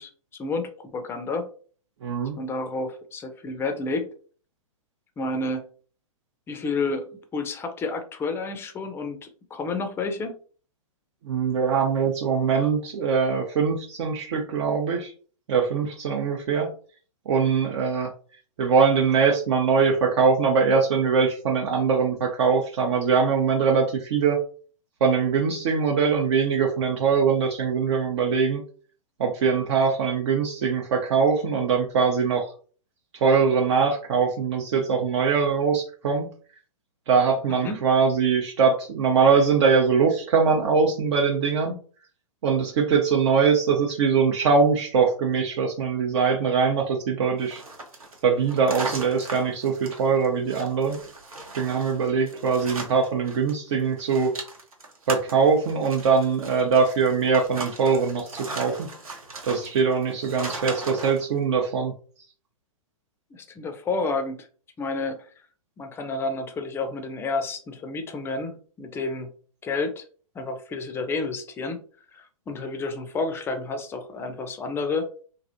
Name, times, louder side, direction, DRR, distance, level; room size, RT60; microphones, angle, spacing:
voice 1, 0.0-1.5 2.4-4.1 5.2-5.6 6.5-10.4 37.5-37.8 63.3-64.5 64.8-65.2 65.8-69.3 69.6-70.1 70.3-71.8 72.1-75.1, left 3 dB, 15° left, 6 dB, 0.5 m, -30 dB
voice 2, 2.0-2.4 11.2-15.1 15.5-16.7 17.3-18.1 18.6-24.4 25.0-28.6 29.2-32.5 33.1-36.3 37.1-41.7 42.4-47.6 48.2-51.0 51.6-54.3 55.1-61.9, right 5 dB, 55° right, 0 dB, 0.7 m, -22 dB
sound 1, 47.4-53.5 53.8-61.2, right 2 dB, 90° right, 1.0 m, -38 dB
3.2 x 2.5 x 2.6 m, 0.42 s
hypercardioid pair, 120°, 18 cm